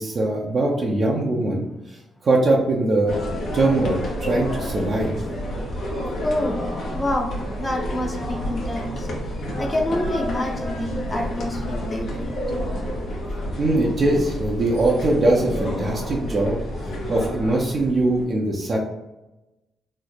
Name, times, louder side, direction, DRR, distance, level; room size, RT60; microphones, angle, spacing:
voice 1, 0.0-3.2 3.5-5.1 13.6-16.6 17.1-18.8, right 2 dB, 50° right, -3 dB, 0.6 m, -21 dB
sound 1, 3.1-18.2, equal, 65° left, 0.9 m, -29 dB
voice 2, 6.2-6.6 6.9-7.3 7.6-9.1 9.6-12.4, left 1 dB, 20° left, 2 dB, 0.7 m, -27 dB
3.1 x 2.1 x 4.0 m, 0.99 s
cardioid pair, 70°, 0 cm